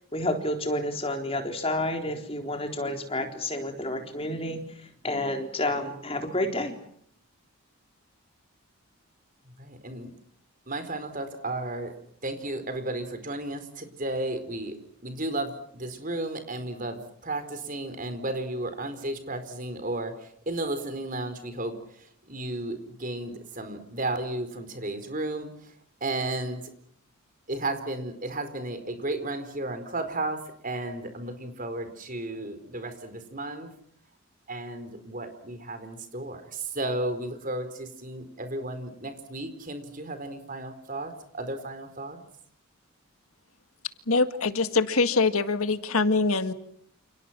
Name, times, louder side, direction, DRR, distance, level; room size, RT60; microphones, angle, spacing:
voice 1, 0.1-6.8, left 1 dB, 25° left, 4 dB, 4.0 m, -30 dB
voice 2, 9.6-10.1 10.7-11.9 12.2-14.8 15.0-25.7 26.0-26.7 27.5-33.7 34.5-42.2, right 2 dB, 35° right, 9 dB, 4.5 m, -33 dB
voice 3, 44.1-46.5, left 3 dB, 75° left, 10 dB, 1.8 m, -24 dB
29.0 x 29.0 x 6.1 m, 0.66 s
head